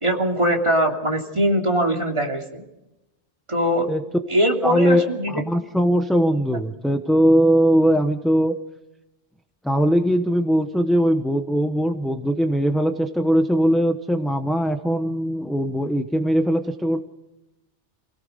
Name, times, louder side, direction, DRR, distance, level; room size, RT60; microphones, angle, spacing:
voice 1, 0.0-2.6 3.5-3.9 4.3-5.4, right 1 dB, 25° right, 0 dB, 3.1 m, -21 dB
voice 2, 4.6-8.6 9.6-17.0, equal, ahead, 4 dB, 0.9 m, -20 dB
29.0 x 17.5 x 5.3 m, 0.95 s
omnidirectional pair, 1.2 m